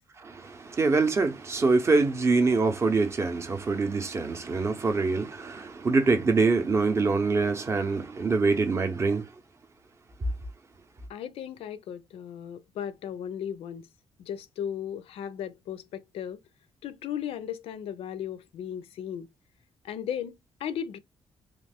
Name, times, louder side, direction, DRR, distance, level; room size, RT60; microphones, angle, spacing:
voice 1, 0.2-9.3, right 4 dB, 25° right, 0.6 m, -25 dB
voice 2, 11.1-13.9 14.2-16.4 16.8-19.3 19.8-20.3 20.6-21.0, left 9 dB, 75° left, 0.4 m, -36 dB
3.0 x 2.4 x 3.5 m
wide cardioid pair, 175°, 10 cm